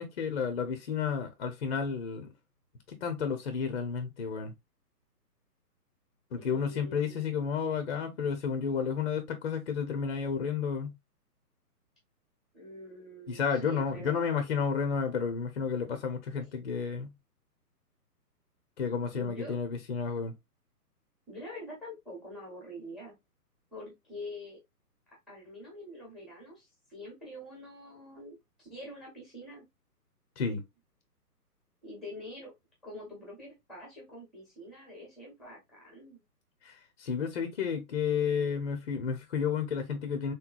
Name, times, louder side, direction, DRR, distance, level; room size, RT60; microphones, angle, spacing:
voice 1, 0.0-2.3 3.0-4.5 6.3-10.9 13.3-17.1 18.8-20.3 30.4-30.6 36.6-40.3, left 6 dB, 40° left, 0.6 m, -31 dB
voice 2, 6.4-7.3 12.5-14.3 16.4-16.5 19.1-19.6 21.3-23.1 23.7-24.6 25.3-29.6 31.8-32.5 32.8-36.2, left 1 dB, ahead, 0.8 m, -45 dB
3.3 x 3.0 x 2.2 m
figure-of-eight pair, 140°, 48 cm